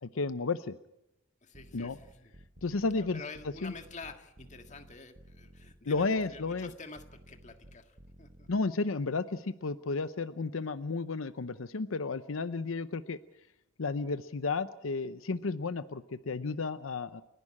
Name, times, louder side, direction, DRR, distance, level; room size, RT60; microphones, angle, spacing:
voice 1, 0.0-0.8 1.7-2.0 2.6-3.2 3.6-3.7 5.8-6.7 8.5-13.2 13.8-17.2, left 3 dB, 85° left, 13 dB, 0.7 m, -32 dB
voice 2, 1.4-2.3 2.9-8.5, left 4 dB, 35° left, 6 dB, 1.8 m, -48 dB
sound 1, 1.5-8.5, right 1 dB, 40° right, 1.1 m, -55 dB
29.5 x 11.5 x 8.7 m, 0.89 s
head